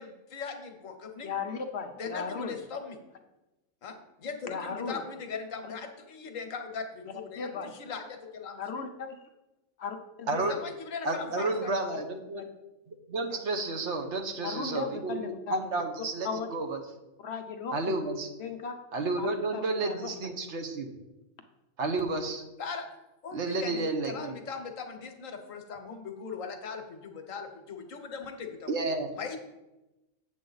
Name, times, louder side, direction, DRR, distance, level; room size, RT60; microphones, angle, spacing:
voice 1, 0.0-1.3 2.0-3.0 3.8-8.6 10.5-11.7 13.3-13.4 22.6-22.9 23.2-28.7 29.2-29.4, left 5 dB, 75° left, 6 dB, 1.3 m, -39 dB
voice 2, 1.2-2.5 4.5-5.0 7.4-7.7 8.6-9.2 9.8-10.5 11.1-11.4 14.4-15.6 16.2-16.5 17.2-18.0 18.4-18.8 19.2-19.3 19.5-20.1, left 5 dB, 60° left, 5 dB, 0.9 m, -36 dB
voice 3, 10.3-10.6 11.0-12.4 13.1-16.8 17.7-18.3 18.9-20.9 21.8-22.4 23.3-24.3 28.7-29.1, right 2 dB, 60° right, 4 dB, 1.2 m, -31 dB
7.7 x 7.5 x 3.9 m, 1.0 s
omnidirectional pair, 1.4 m